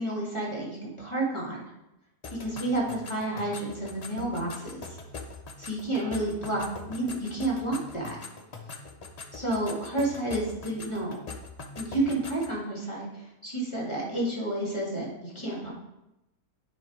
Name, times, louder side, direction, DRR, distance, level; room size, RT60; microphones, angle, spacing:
voice 1, 0.0-1.6 2.4-5.0 5.6-8.2 9.3-11.2 11.8-15.7, right 1 dB, 15° left, -4 dB, 2.0 m, -30 dB
sound 1, 2.2-12.6, left 3 dB, 65° left, 0.3 m, -43 dB
9.6 x 3.7 x 4.9 m, 0.91 s
omnidirectional pair, 1.8 m